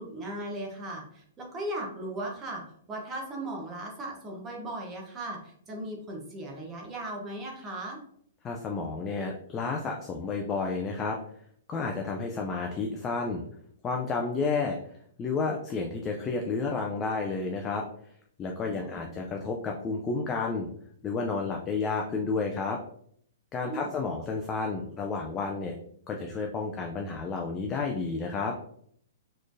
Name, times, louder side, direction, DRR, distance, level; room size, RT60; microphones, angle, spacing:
voice 1, 0.0-2.6 2.9-8.0 18.6-19.0 23.6-23.9, right 1 dB, 20° right, -1 dB, 0.8 m, -37 dB
voice 2, 8.4-11.2 11.7-13.4 13.8-14.8 15.2-17.8 18.4-20.7 21.0-22.8 23.5-25.8 26.1-28.5, left 4 dB, 20° left, 1 dB, 0.4 m, -31 dB
4.2 x 3.1 x 2.6 m, 0.66 s
hypercardioid pair, 155°, 0 cm